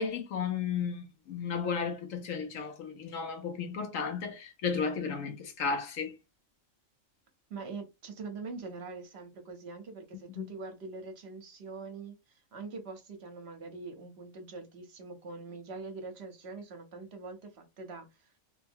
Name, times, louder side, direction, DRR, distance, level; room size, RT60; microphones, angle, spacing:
voice 1, 0.0-6.1 10.4-10.5, left 6 dB, 80° left, 1.1 m, -34 dB
voice 2, 7.5-18.3, right 4 dB, 55° right, 1.0 m, -43 dB
3.3 x 2.1 x 3.4 m
omnidirectional pair, 1.4 m